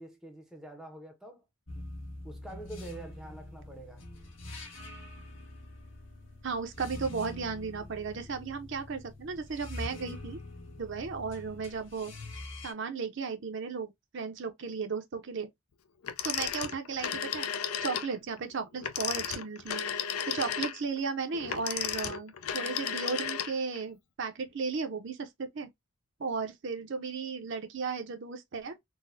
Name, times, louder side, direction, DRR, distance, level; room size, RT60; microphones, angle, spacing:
voice 1, 0.0-1.4 1.7-1.9 2.2-4.0, right 1 dB, ahead, 0.6 m, -46 dB
sound 1, 1.7-12.7, left 1 dB, 55° left, 1.2 m, -44 dB
voice 2, 6.4-10.4 10.8-12.1 12.6-15.5 16.2-17.5 17.8-19.8 20.3-25.7 26.2-28.8, right 5 dB, 55° right, 0.5 m, -35 dB
Telephone, 16.0-18.1 18.8-23.8, left 8 dB, 85° left, 0.5 m, -34 dB
3.9 x 2.1 x 2.5 m
head